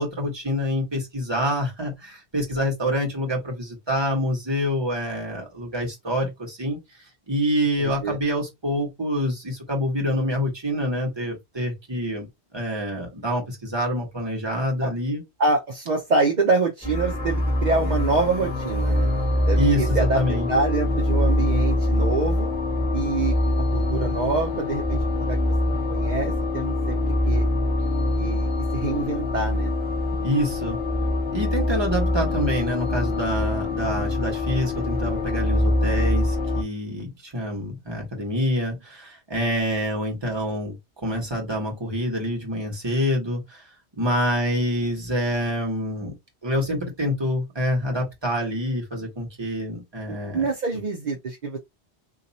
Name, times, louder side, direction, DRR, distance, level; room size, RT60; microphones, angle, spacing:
voice 1, 0.0-6.8 7.3-12.3 12.5-15.2 19.5-20.5 30.2-30.8 31.3-40.8 41.0-43.6 44.0-46.1 46.4-50.5, equal, 25° right, 1.3 m, -26 dB
voice 2, 7.8-8.2 14.8-14.9 15.4-19.1 19.5-20.2 20.5-22.5 22.9-27.0 27.3-27.5 28.1-29.7 50.1-51.6, right 3 dB, 45° right, 0.8 m, -26 dB
sound 1, 16.8-36.6, left 2 dB, 10° right, 1.5 m, -24 dB
2.8 x 2.4 x 4.1 m
omnidirectional pair, 1.1 m